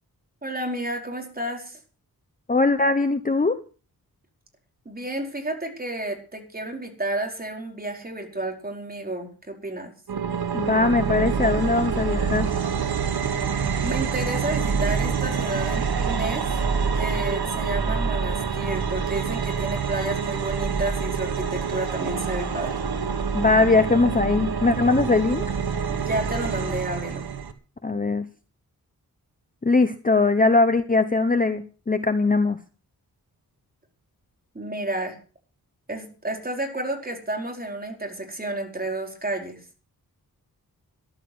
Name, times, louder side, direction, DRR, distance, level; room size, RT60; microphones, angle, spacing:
voice 1, 0.4-1.8 4.8-9.9 13.8-16.6 16.9-22.8 25.9-27.3 34.5-35.2 35.9-39.6, right 1 dB, 25° right, 2 dB, 4.8 m, -31 dB
voice 2, 2.5-3.6 10.5-12.5 23.3-25.6 27.8-28.3 29.6-32.6, left 3 dB, 20° left, 9 dB, 1.0 m, -21 dB
sound 1, 10.1-27.5, right 6 dB, 90° right, 1.9 m, -26 dB
14.0 x 11.5 x 6.3 m, 0.38 s
wide cardioid pair, 110°, 37 cm